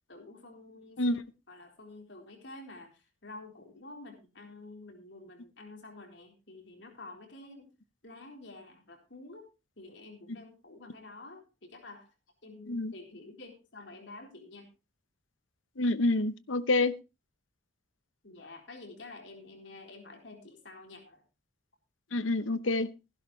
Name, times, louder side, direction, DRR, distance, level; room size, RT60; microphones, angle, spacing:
voice 1, 0.1-1.2 1.5-7.7 8.0-9.5 9.8-12.1 12.4-14.7 18.2-21.2, left 2 dB, 65° left, 3 dB, 4.0 m, -49 dB
voice 2, 15.8-16.9 22.1-22.9, left 2 dB, 90° left, 15 dB, 0.9 m, -27 dB
15.5 x 11.5 x 3.2 m, 0.27 s
head